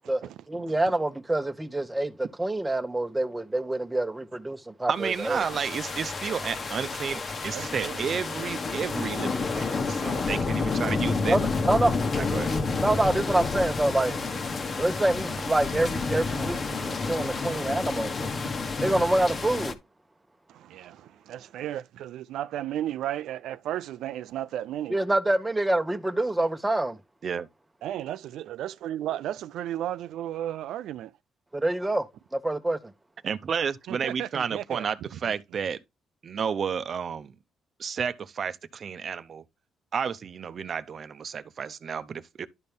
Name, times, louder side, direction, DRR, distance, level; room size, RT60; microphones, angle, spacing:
voice 1, 0.1-5.4 11.3-11.9 12.8-14.2 14.8-18.1 18.8-19.8 24.9-27.0 31.5-32.1 32.3-32.9, right 1 dB, 10° right, 1.0 m, -26 dB
voice 2, 4.9-11.4 12.2-12.5 27.2-27.5 33.2-35.8 36.2-37.3 37.8-39.4 39.9-42.5, right 7 dB, 50° right, 0.7 m, -31 dB
sound 1, 5.0-19.7, left 4 dB, 40° left, 1.3 m, -30 dB
voice 3, 7.5-8.0 13.1-13.2 17.4-17.8 20.5-25.0 27.8-31.1 33.9-34.9, right 12 dB, 80° right, 0.4 m, -34 dB
12.0 x 4.3 x 3.5 m
cardioid pair, 90°, 0 cm